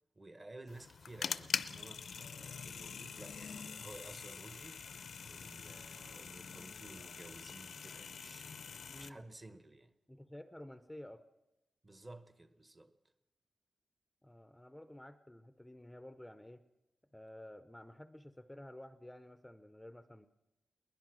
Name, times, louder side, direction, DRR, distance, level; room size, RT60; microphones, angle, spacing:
voice 1, 0.1-9.9 11.8-13.0, right 2 dB, 25° right, 1.0 m, -54 dB
sound 1, 0.7-9.1, left 6 dB, 70° left, 0.7 m, -44 dB
voice 2, 8.9-9.2 10.1-11.2 14.2-16.7 17.1-20.3, left 1 dB, 5° left, 0.6 m, -52 dB
21.5 x 20.0 x 6.2 m
wide cardioid pair, 135°, 0 cm